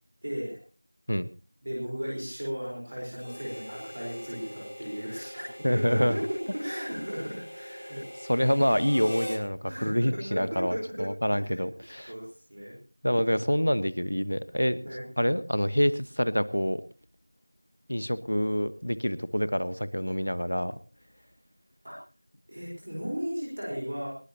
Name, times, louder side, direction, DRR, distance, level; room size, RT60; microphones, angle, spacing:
voice 1, 0.2-0.6 1.6-8.0 9.7-11.6 12.1-12.8 14.8-15.0 21.8-21.9 22.5-24.1, equal, 20° right, -4 dB, 4.1 m, -35 dB
Harmonica, 3.1-9.4, equal, 85° left, 4.3 m, -42 dB
voice 2, 5.6-6.2 8.3-12.1 13.0-16.8 17.9-20.8, equal, 65° left, 14 dB, 1.1 m, -27 dB
20.5 x 20.5 x 2.8 m, 0.35 s
figure-of-eight pair, 180°, 0 cm